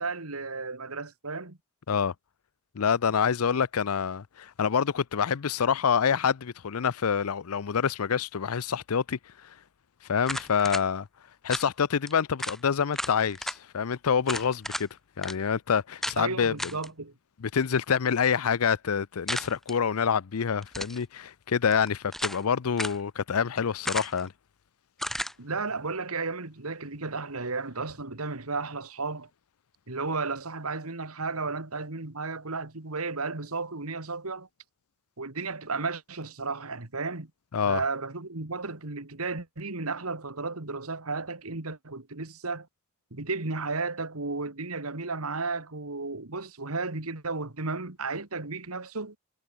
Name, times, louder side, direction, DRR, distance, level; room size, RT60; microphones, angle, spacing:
voice 1, 0.0-1.6 16.2-17.1 25.4-29.3 29.9-34.5 35.2-37.3 37.7-42.7 43.1-49.2, right 3 dB, 85° right, 2.3 m, -33 dB
voice 2, 2.7-9.2 10.1-11.1 11.4-14.9 15.2-16.7 17.4-24.3 37.5-37.8, left 7 dB, 85° left, 0.6 m, -27 dB
sound 1, 10.2-10.8 11.5-11.7 12.1-12.2 12.4-12.6 12.9-13.6 14.3-14.9 15.2-15.3 16.0-16.2 16.6-16.9 19.3-19.8 20.6-21.0 21.7-22.4 22.8-23.0 23.8-24.3 25.0-25.3, equal, ahead, 3.6 m, -33 dB
head